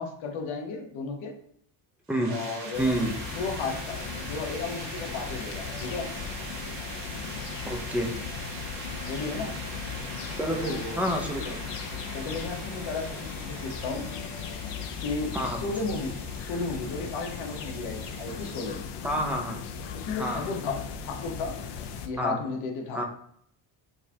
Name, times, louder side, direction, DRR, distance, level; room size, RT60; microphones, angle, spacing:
voice 1, 0.0-1.3 2.3-2.9 3.3-6.1 9.1-9.6 10.5-11.0 11.4-11.5 12.1-14.1 15.0-16.1 16.4-18.8 19.9-21.6 22.1-23.0, left 4 dB, 80° left, 1 dB, 1.0 m, -34 dB
sound 1, 2.1-18.8, right 3 dB, 60° right, 1.1 m, -42 dB
sound 2, 2.7-22.1, left 6 dB, 60° left, 0.5 m, -37 dB
voice 2, 2.8-3.1 7.7-8.1 10.4-11.6 15.3-15.6 19.0-19.6 20.2-20.4 22.2-22.4 22.9-23.0, right 1 dB, 5° right, 2 dB, 0.3 m, -28 dB
4.8 x 2.2 x 2.7 m, 0.66 s
cardioid pair, 140°, 47 cm